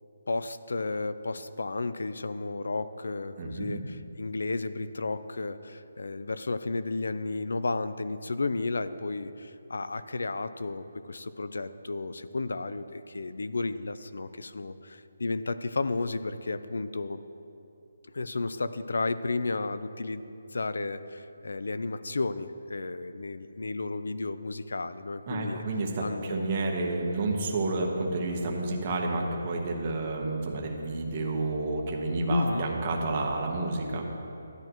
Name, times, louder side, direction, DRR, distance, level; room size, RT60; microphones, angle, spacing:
voice 1, 0.3-17.2 18.1-25.6 26.0-26.5 32.3-32.6, left 3 dB, 85° left, 13 dB, 0.5 m, -33 dB
voice 2, 3.4-3.8 25.3-34.1, right 2 dB, 25° right, 0 dB, 1.2 m, -30 dB
14.5 x 10.5 x 3.1 m, 2.8 s
hypercardioid pair, 170°, 0 cm